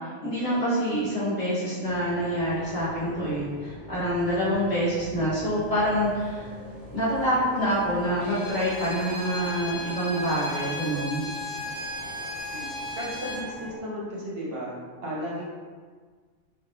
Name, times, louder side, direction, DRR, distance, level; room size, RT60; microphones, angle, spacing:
voice 1, 0.2-6.5 6.9-11.2, equal, 35° left, -10 dB, 1.3 m, -26 dB
sound 1, 1.8-13.7, equal, 90° right, 1.0 m, -44 dB
Bowed string instrument, 8.2-13.5, left 1 dB, 90° left, 1.2 m, -35 dB
voice 2, 13.0-14.7 15.0-15.4, equal, 55° right, -5 dB, 1.0 m, -34 dB
3.6 x 2.8 x 2.3 m, 1.5 s
omnidirectional pair, 1.3 m